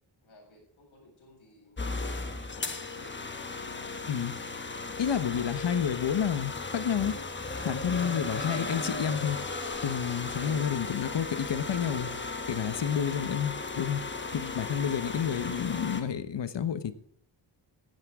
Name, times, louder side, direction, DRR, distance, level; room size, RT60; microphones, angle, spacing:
voice 1, 0.2-3.8 12.6-13.0 14.7-15.1, left 2 dB, 85° left, 7.7 m, -56 dB
sound 1, 1.8-16.0, left 3 dB, 25° left, 1.2 m, -36 dB
voice 2, 4.1-4.4 5.0-7.1 7.6-9.4 9.8-12.1 12.5-14.0 14.3-16.9, left 8 dB, 65° left, 1.2 m, -30 dB
16.5 x 13.5 x 3.7 m
wide cardioid pair, 175°, 47 cm